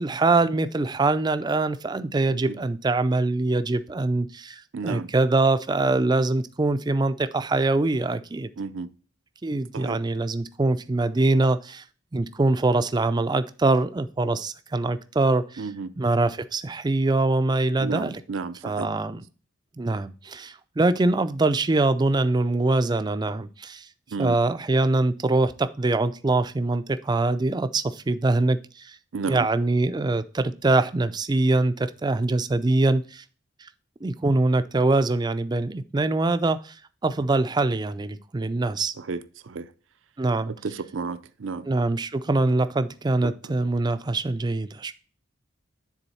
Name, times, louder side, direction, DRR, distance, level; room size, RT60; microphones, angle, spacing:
voice 1, 0.0-8.5 9.4-11.8 12.1-15.7 16.0-18.2 18.6-19.2 19.8-23.8 24.2-28.9 29.3-33.2 34.0-36.7 37.0-38.9 40.2-40.5 41.6-44.9, right 2 dB, 20° right, 0.4 m, -23 dB
voice 2, 4.7-5.1 8.6-8.9 9.7-10.0 15.6-15.9 17.8-18.9 24.1-24.4 29.1-29.5 39.0-39.7 40.5-41.7 43.2-43.3, right 4 dB, 75° right, 0.5 m, -32 dB
9.9 x 3.9 x 4.2 m
head